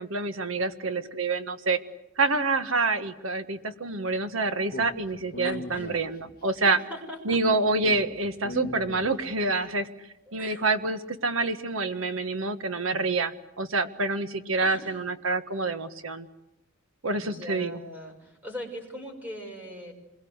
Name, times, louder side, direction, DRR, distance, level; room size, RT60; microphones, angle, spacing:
voice 1, 0.0-1.8 2.2-6.8 7.2-9.9 10.3-16.3 17.0-17.8, right 3 dB, 75° right, 9 dB, 1.5 m, -27 dB
Speech, 4.7-6.5 7.8-9.5, left 1 dB, 50° left, 1.5 m, -40 dB
voice 2, 5.4-6.0 6.6-7.6 10.3-10.7 14.6-15.0 17.2-19.9, left 1 dB, 10° right, 1 dB, 6.0 m, -40 dB
27.0 x 22.5 x 8.1 m, 0.92 s
head